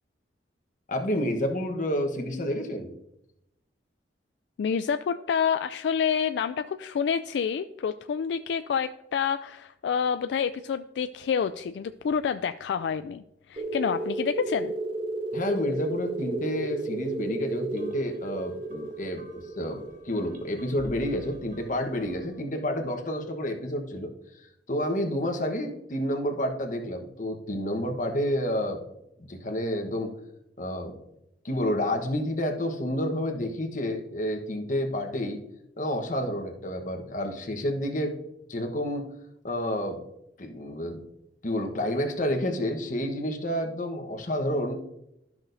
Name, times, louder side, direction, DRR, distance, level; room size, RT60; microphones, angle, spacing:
voice 1, 0.9-2.9 15.3-19.2 19.6-24.1 24.7-28.8 29.3-30.1 30.6-30.9 31.4-35.4 35.8-38.2 38.5-39.1 39.4-40.0 40.4-41.0 41.4-44.7, equal, 45° left, 4 dB, 1.1 m, -29 dB
voice 2, 4.6-13.2 13.5-14.7, left 7 dB, 75° left, 10 dB, 0.3 m, -28 dB
sound 1, 13.6-21.9, right 2 dB, 30° right, 0.5 m, -34 dB
sound 2, 17.7-22.5, right 1 dB, 50° right, 1.2 m, -50 dB
13.0 x 6.0 x 2.6 m, 0.83 s
head